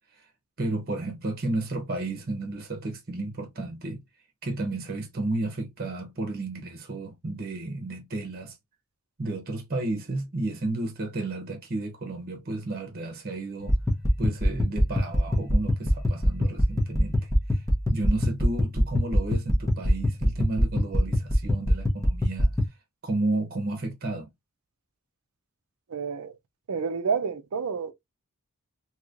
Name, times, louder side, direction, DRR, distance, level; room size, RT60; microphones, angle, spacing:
voice 1, 0.6-4.0 4.4-8.6 9.2-13.7 14.2-17.6 17.9-22.5 23.0-24.3, right 2 dB, 45° right, 0.9 m, -32 dB
sound 1, 13.6-22.6, equal, 15° left, 0.9 m, -24 dB
voice 2, 25.9-26.3 26.7-27.9, right 5 dB, 75° right, 0.6 m, -29 dB
3.1 x 2.9 x 2.5 m
head